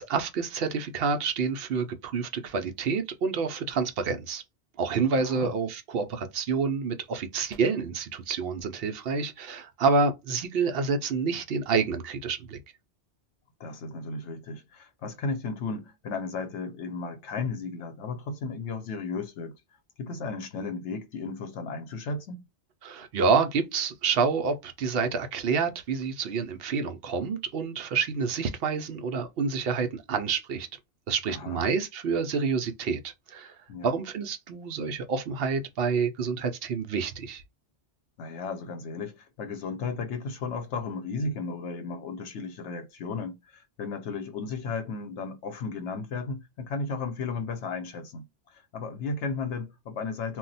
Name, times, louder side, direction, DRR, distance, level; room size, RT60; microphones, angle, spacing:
voice 1, 0.0-4.4 4.8-12.6 22.8-30.7 31.1-33.5 33.8-37.4, right 5 dB, 65° right, 0.7 m, -28 dB
voice 2, 5.1-5.5 13.6-19.6 20.0-22.4 31.3-31.6 33.7-33.9 38.2-48.3 48.5-50.4, left 4 dB, 90° left, 0.9 m, -34 dB
2.3 x 2.1 x 3.9 m
omnidirectional pair, 1.1 m